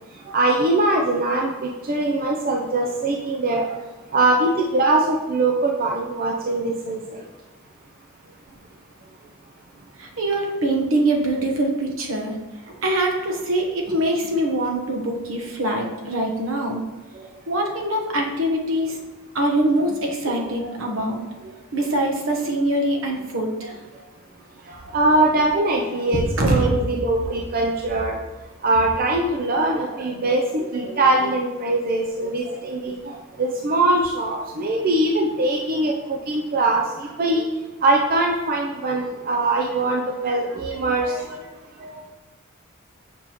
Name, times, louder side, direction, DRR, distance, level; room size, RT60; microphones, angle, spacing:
voice 1, 0.3-3.6 4.1-7.2 24.7-28.2 28.6-37.4 37.8-41.4 41.8-42.0, right 2 dB, 45° right, 0 dB, 0.5 m, -22 dB
voice 2, 10.0-12.4 12.7-16.8 17.5-19.0 19.3-21.2 21.7-23.8 26.1-26.7 27.0-27.3 30.7-30.9 41.2-41.3, right 1 dB, 70° right, 1 dB, 1.1 m, -23 dB
6.9 x 5.3 x 3.0 m, 1.1 s
head